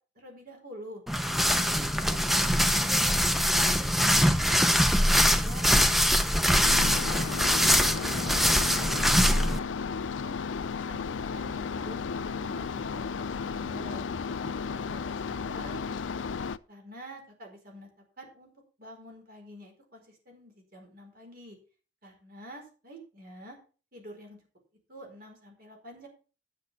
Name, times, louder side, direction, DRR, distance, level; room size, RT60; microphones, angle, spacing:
voice 1, 0.1-1.0 1.5-3.9 4.3-7.1 7.8-8.6 9.1-10.4 10.7-14.1 14.4-16.3 16.7-18.5 18.8-21.6 22.0-23.6 23.9-24.4 24.9-26.1, equal, 50° right, 2 dB, 4.6 m, -48 dB
sound 1, 1.1-9.6, equal, ahead, 0.8 m, -23 dB
sound 2, 6.6-16.6, left 5 dB, 80° left, 0.5 m, -34 dB
10.5 x 6.8 x 6.0 m, 0.37 s
head